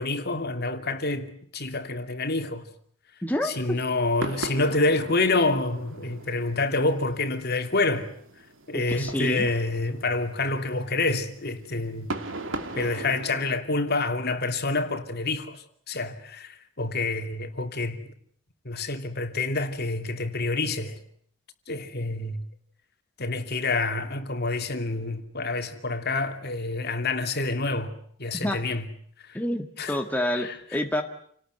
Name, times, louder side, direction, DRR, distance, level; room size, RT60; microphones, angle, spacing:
voice 1, 0.0-2.7 3.4-8.1 8.7-12.1 12.8-15.6 15.9-18.0 18.6-21.0 21.7-22.4 23.2-28.9 29.2-29.3 29.8-30.0 30.4-30.6, left 3 dB, 50° left, 2.8 m, -27 dB
voice 2, 3.2-3.8 8.7-9.5 28.3-28.6 29.3-31.0, left 1 dB, 10° left, 1.7 m, -28 dB
sound 1, 4.2-13.6, right 2 dB, 70° right, 2.8 m, -39 dB
29.0 x 19.0 x 9.4 m
head